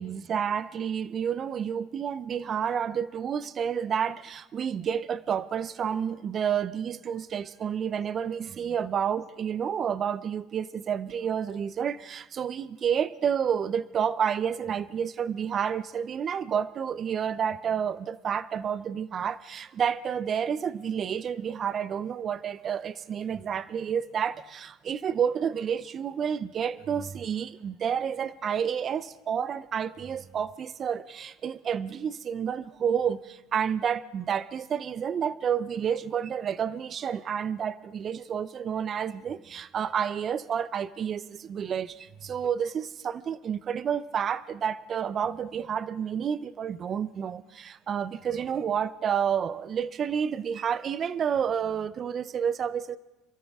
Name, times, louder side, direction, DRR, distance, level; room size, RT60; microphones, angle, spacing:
voice 1, 0.0-53.0, right 8 dB, 45° right, 16 dB, 0.5 m, -30 dB
26.5 x 13.5 x 3.6 m, 0.99 s
supercardioid pair, 85°, 0 cm